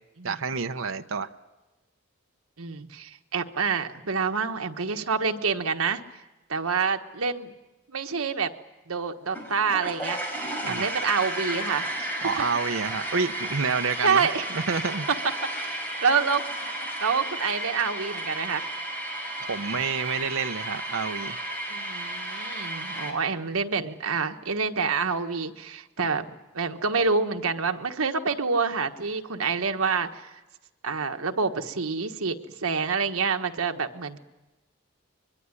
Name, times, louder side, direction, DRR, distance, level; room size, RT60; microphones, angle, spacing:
voice 1, 0.2-1.3 10.6-10.9 12.2-15.1 19.4-21.4, right 5 dB, 70° right, 0.9 m, -29 dB
voice 2, 2.6-6.0 6.5-7.5 7.9-8.5 8.9-12.2 14.0-14.5 15.6-18.7 21.7-26.3 26.5-30.3 30.8-34.2, right 5 dB, 90° right, 1.4 m, -27 dB
sound 1, 9.3-23.1, right 1 dB, 10° left, 5.5 m, -33 dB
24.0 x 23.0 x 9.8 m
head